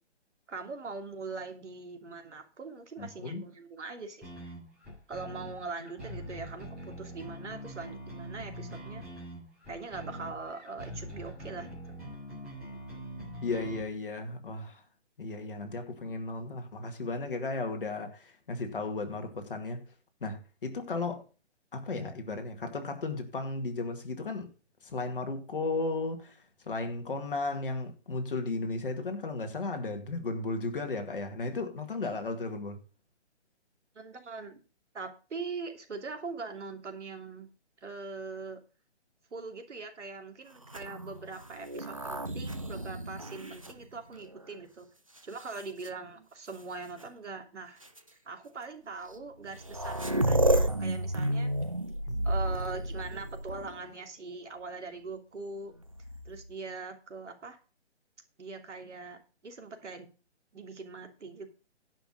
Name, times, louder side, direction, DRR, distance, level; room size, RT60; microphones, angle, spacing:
voice 1, 0.5-4.5 5.1-9.1 9.7-12.0 33.9-34.6 34.9-37.5 37.8-38.6 39.3-44.9 45.2-47.8 48.1-51.6 52.2-55.7 56.2-57.6 58.4-60.1 60.5-61.5, right 4 dB, 80° right, 2.9 m, -42 dB
voice 2, 3.0-3.5 13.4-14.8 15.2-19.8 20.2-21.2 21.7-24.5 24.8-26.4 26.7-32.8 52.1-52.3, left 3 dB, 50° left, 2.2 m, -35 dB
sound 1, 4.2-13.8, equal, ahead, 3.6 m, -43 dB
sound 2, 40.6-44.5 45.2-45.9 47.0-47.1 47.8-48.0 49.1-49.2 49.4-53.9 55.8-56.5, right 1 dB, 30° right, 0.5 m, -32 dB
10.0 x 6.0 x 6.4 m
hypercardioid pair, 180°, 35 cm